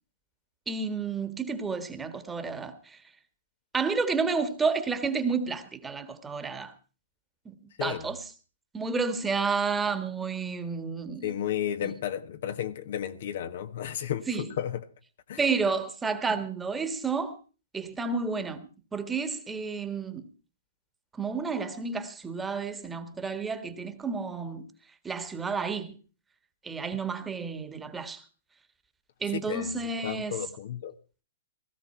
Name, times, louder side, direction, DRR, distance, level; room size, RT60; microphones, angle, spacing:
voice 1, 0.7-3.0 3.7-6.7 7.5-7.6 7.8-8.2 8.7-11.3 14.3-14.5 15.4-17.4 17.7-20.3 21.2-24.7 25.0-26.0 26.6-28.2 29.2-30.4, right 4 dB, 10° right, 1.7 m, -31 dB
voice 2, 11.2-14.9 15.3-15.4 29.3-29.7 30.0-30.9, left 10 dB, 60° left, 1.4 m, -33 dB
17.0 x 14.5 x 4.5 m
hypercardioid pair, 125°, 0 cm